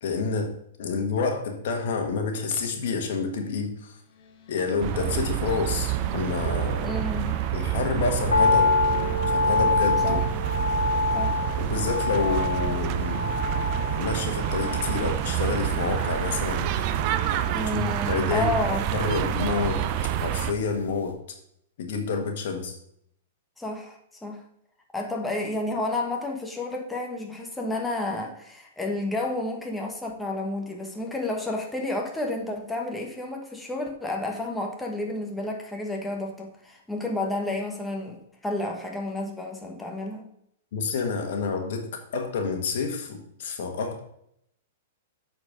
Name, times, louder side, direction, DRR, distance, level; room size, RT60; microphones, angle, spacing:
voice 1, 0.0-0.5 0.8-4.0 4.5-7.0 7.5-8.7 9.3-10.3 11.6-13.2 14.0-16.7 17.7-18.5 18.9-19.8 20.2-21.2 21.8-22.7 40.7-44.0, left 5 dB, 65° left, 4 dB, 1.6 m, -28 dB
sound 1, 4.1-9.2, left 2 dB, 40° left, 1.4 m, -43 dB
sound 2, 4.8-20.5, right 11 dB, 45° right, 0.6 m, -28 dB
voice 2, 6.8-7.4 10.0-10.2 11.1-11.3 17.5-18.9 23.6-24.4 24.9-40.3, left 2 dB, 5° left, 0 dB, 1.2 m, -31 dB
sound 3, 8.3-20.6 20.9-21.0, left 4 dB, 90° left, 1.6 m, -27 dB
8.2 x 4.5 x 5.2 m, 0.72 s
hypercardioid pair, 125°, 0 cm